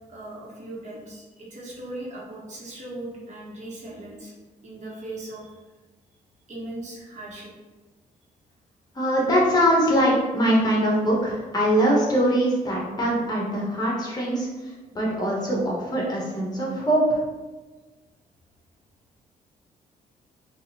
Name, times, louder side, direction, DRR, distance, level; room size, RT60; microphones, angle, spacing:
voice 1, 0.1-4.3 4.6-5.6 6.5-7.5, right 1 dB, 55° right, -4 dB, 1.2 m, -38 dB
voice 2, 8.9-17.2, equal, 25° left, -3 dB, 1.2 m, -22 dB
3.9 x 2.5 x 4.1 m, 1.2 s
cardioid pair, 115°, 15 cm